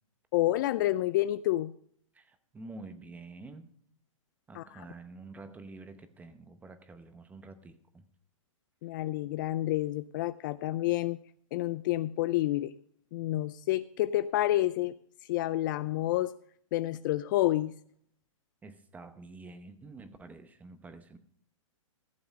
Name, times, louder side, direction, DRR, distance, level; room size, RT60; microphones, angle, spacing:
voice 1, 0.3-1.7 4.5-4.8 8.8-11.2 11.5-12.7 13.1-14.9 15.2-16.3 16.7-17.7, left 15 dB, 40° left, 14 dB, 0.3 m, -29 dB
voice 2, 2.1-3.7 4.5-8.0 18.6-21.2, right 3 dB, 10° right, 11 dB, 0.8 m, -48 dB
14.5 x 7.0 x 5.2 m, 0.64 s
hypercardioid pair, 140°, 17 cm